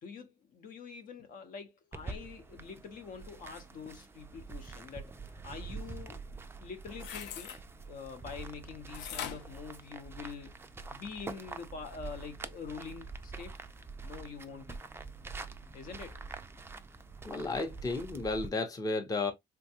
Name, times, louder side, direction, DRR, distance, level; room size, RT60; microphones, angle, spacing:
voice 1, 0.0-5.1 5.4-6.2 6.6-7.5 7.9-10.5 10.9-13.5 14.0-14.8 15.7-16.2, left 5 dB, 55° left, 0.8 m, -45 dB
sound 1, 1.9-18.5, right 4 dB, 15° right, 0.4 m, -46 dB
sound 2, 6.9-7.6 8.9-10.5 11.0-11.1, left 9 dB, 90° left, 0.5 m, -42 dB
voice 2, 17.2-19.3, left 3 dB, 20° left, 0.7 m, -33 dB
3.4 x 2.2 x 2.7 m
cardioid pair, 110°, 17 cm